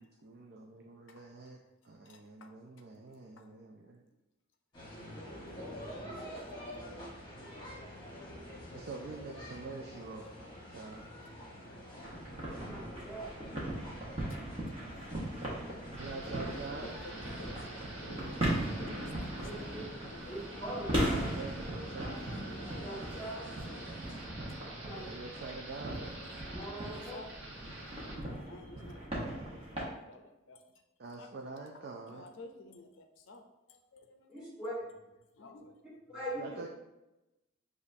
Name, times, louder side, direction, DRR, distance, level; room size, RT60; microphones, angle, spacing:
voice 1, 0.0-1.6 1.8-4.0 8.7-10.3 10.7-11.0 16.0-16.9 21.3-22.2 24.2-24.5 24.9-26.2 31.0-32.3 36.4-36.7, right 3 dB, 50° right, 1 dB, 0.4 m, -45 dB
voice 2, 1.1-1.4 1.8-2.5 3.0-4.1 6.9-7.1 7.9-8.2 8.5-10.1 10.4-10.5 10.9-11.1 11.4-11.9 12.3-12.4 12.8-13.1 13.5-14.4 14.8-15.4 15.8-20.4 21.9-22.6 23.4-24.3 24.8-25.0 26.2-27.3 28.2-30.6 31.2-31.3 31.7-34.5 35.4-36.2, left 2 dB, 65° left, 4 dB, 0.5 m, -55 dB
sound 1, 4.7-24.2, equal, 25° left, 1.2 m, -48 dB
voice 3, 5.5-7.1 12.5-13.3 19.4-19.8 20.2-21.1 22.8-23.5 24.8-25.1 26.5-27.2 34.3-34.7 36.1-36.6, right 1 dB, 5° right, -7 dB, 1.4 m, -43 dB
sound 2, 12.0-29.9, right 1 dB, 30° right, 1.0 m, -39 dB
Thunder / Rain, 16.0-28.1, right 1 dB, 65° right, 1.1 m, -46 dB
6.8 x 2.5 x 2.6 m, 0.97 s
head